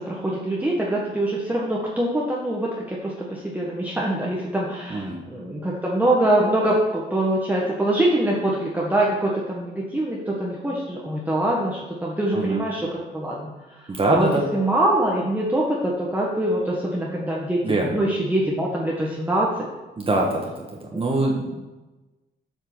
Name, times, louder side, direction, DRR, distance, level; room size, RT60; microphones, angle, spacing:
voice 1, 0.0-19.7, right 1 dB, 10° right, -4 dB, 1.6 m, -24 dB
voice 2, 4.9-5.2 12.3-12.6 13.9-14.4 17.6-18.0 20.0-20.7 20.9-21.6, right 2 dB, 30° right, -1 dB, 1.6 m, -23 dB
8.0 x 6.5 x 6.3 m, 1.1 s
cardioid pair, 90°, 20 cm